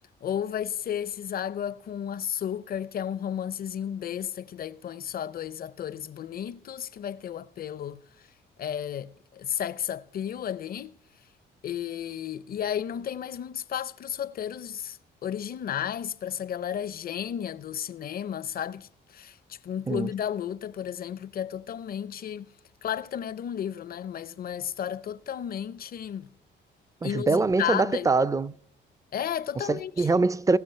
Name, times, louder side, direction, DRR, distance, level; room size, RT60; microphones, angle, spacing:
voice 1, 0.2-8.0 8.6-11.0 11.6-22.5 22.8-26.3 27.0-28.1 29.1-30.1, left 9 dB, 50° left, 0.5 m, -33 dB
voice 2, 27.0-28.6 29.7-30.6, right 3 dB, 15° right, 0.4 m, -24 dB
18.0 x 6.2 x 5.6 m
cardioid pair, 90°, 20 cm